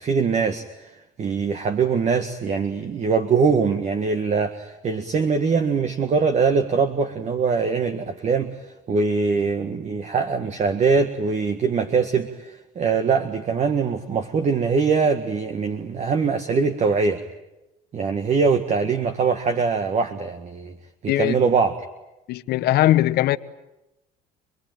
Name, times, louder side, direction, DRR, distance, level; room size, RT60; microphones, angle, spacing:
voice 1, 0.0-17.2 17.9-20.7 21.0-21.8, right 5 dB, 45° right, 1.8 m, -22 dB
voice 2, 22.3-23.4, left 14 dB, 70° left, 1.1 m, -19 dB
27.0 x 21.5 x 9.2 m
cardioid pair, 105°, 17 cm